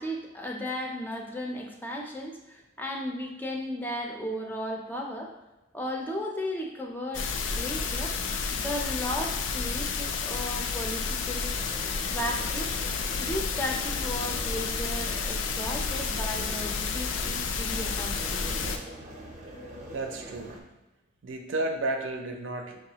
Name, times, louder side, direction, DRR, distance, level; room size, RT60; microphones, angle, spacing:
voice 1, 0.0-5.3 5.7-8.2 8.6-11.6 12.1-12.7 13.2-18.7, equal, 10° left, 0 dB, 0.4 m, -35 dB
sound 1, 7.1-18.8, left 5 dB, 80° left, 0.4 m, -31 dB
sound 2, 11.5-20.6, right 1 dB, 35° right, 0.6 m, -44 dB
voice 2, 19.9-20.6 21.2-22.8, right 2 dB, 85° right, 3 dB, 0.5 m, -32 dB
5.5 x 2.4 x 2.8 m, 1.0 s
head